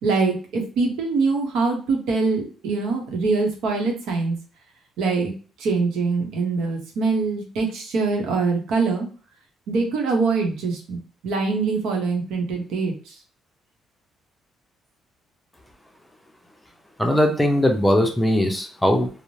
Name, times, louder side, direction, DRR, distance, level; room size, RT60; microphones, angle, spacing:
voice 1, 0.0-4.3 5.0-5.3 5.6-9.1 9.7-13.1, right 4 dB, 90° right, 2 dB, 0.8 m, -23 dB
voice 2, 17.0-19.1, equal, 5° left, 3 dB, 0.5 m, -19 dB
2.6 x 2.0 x 3.0 m, 0.38 s
cardioid pair, 135°, 0 cm